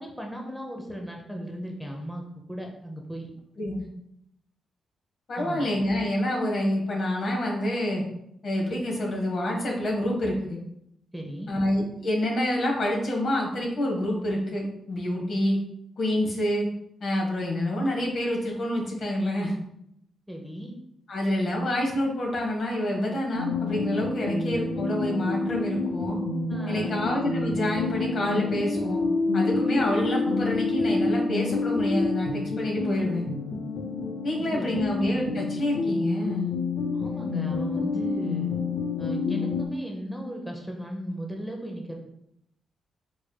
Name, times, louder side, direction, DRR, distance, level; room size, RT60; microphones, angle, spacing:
voice 1, 0.0-2.2 2.5-3.3 5.4-5.7 11.1-11.5 20.3-20.7 24.2-24.3 26.5-27.0 34.3-34.9 36.9-38.5 39.0-42.0, equal, ahead, 1 dB, 0.7 m, -36 dB
voice 2, 5.3-8.0 8.4-10.6 11.5-15.6 16.0-16.7 17.0-19.5 21.1-26.2 26.7-29.0 29.3-33.2 34.2-36.5, left 1 dB, 60° left, -1 dB, 1.2 m, -27 dB
sound 1, 23.4-39.7, left 3 dB, 80° left, 0.5 m, -28 dB
4.6 x 3.2 x 2.2 m, 0.77 s
cardioid pair, 65°, 0 cm